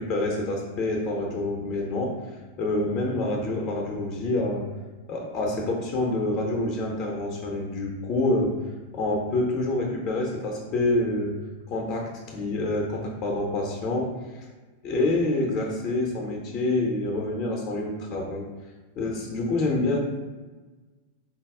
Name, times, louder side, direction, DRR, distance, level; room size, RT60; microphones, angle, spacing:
voice 1, 0.0-2.1 2.6-4.6 5.1-8.5 8.9-11.3 11.7-14.1 14.8-18.4 19.0-20.0, left 2 dB, 30° left, 0 dB, 0.6 m, -27 dB
4.1 x 2.3 x 3.5 m, 1.3 s
figure-of-eight pair, 90°, 0 cm